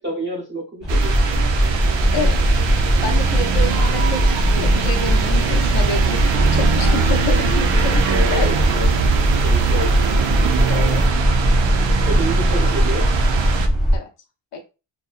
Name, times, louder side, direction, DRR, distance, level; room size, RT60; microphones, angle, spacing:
voice 1, 0.0-1.4 8.1-8.9 9.4-10.1 12.0-13.1, right 1 dB, 25° right, -2 dB, 0.9 m, -28 dB
sound 1, 0.8-14.0, equal, ahead, 0.5 m, -19 dB
sound 2, 0.9-13.7, right 7 dB, 80° right, 0.6 m, -23 dB
voice 2, 2.1-2.6 3.0-8.5 10.7-11.0 13.9-14.1 14.5-14.7, left 3 dB, 65° left, 3 dB, 0.7 m, -28 dB
2.7 x 2.2 x 2.4 m, 0.31 s
wide cardioid pair, 175°, 45 cm